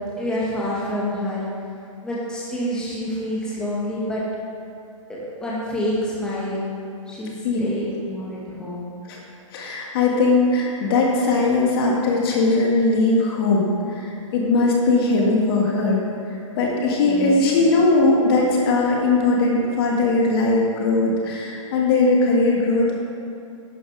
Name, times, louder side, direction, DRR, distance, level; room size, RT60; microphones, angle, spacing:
voice 1, 0.2-1.4 2.0-4.2 5.1-6.6 7.1-7.3 7.6-8.9 17.0-17.3, left 1 dB, 5° left, -7 dB, 1.8 m, -27 dB
voice 2, 9.5-16.0 16.6-23.0, left 3 dB, 45° left, -2 dB, 2.0 m, -19 dB
11.0 x 7.2 x 4.8 m, 2.5 s
hypercardioid pair, 140°, 17 cm